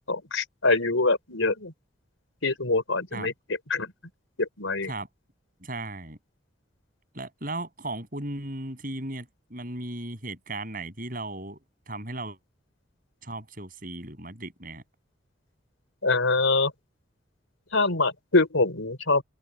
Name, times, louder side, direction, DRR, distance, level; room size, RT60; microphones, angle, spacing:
voice 1, 0.1-1.7 2.4-3.3 3.7-3.9 4.4-4.9 16.0-16.7 17.7-19.2, left 3 dB, 90° left, 4.9 m, -24 dB
voice 2, 5.6-6.2 7.1-11.6 11.9-12.4 13.2-14.8, right 2 dB, 45° right, 7.6 m, -36 dB
open air
head